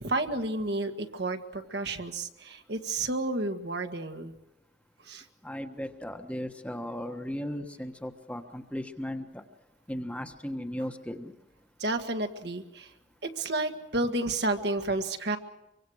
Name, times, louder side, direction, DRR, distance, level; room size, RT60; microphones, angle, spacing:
voice 1, 0.0-4.3 5.1-5.2 11.8-12.9 13.2-15.4, right 2 dB, 60° right, 5 dB, 1.7 m, -31 dB
voice 2, 5.4-9.4 9.9-11.3, equal, 5° left, 5 dB, 1.3 m, -36 dB
24.5 x 24.5 x 6.5 m, 0.89 s
head